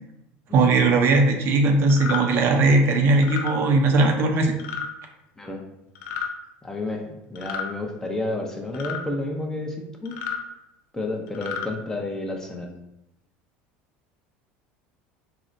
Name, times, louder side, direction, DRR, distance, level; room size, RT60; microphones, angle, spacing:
voice 1, 0.5-4.5, right 3 dB, 55° right, 4 dB, 0.5 m, -19 dB
sound 1, 1.9-2.2 3.2-3.5 4.6-4.9 5.9-6.3 7.4-7.7 8.7-9.0 10.1-10.4 11.3-11.7, left 7 dB, 70° left, 0.4 m, -31 dB
voice 2, 6.6-10.2 10.9-12.7, left 2 dB, 10° left, 1 dB, 0.5 m, -31 dB
3.9 x 2.1 x 2.5 m, 0.88 s
supercardioid pair, 105°, 5 cm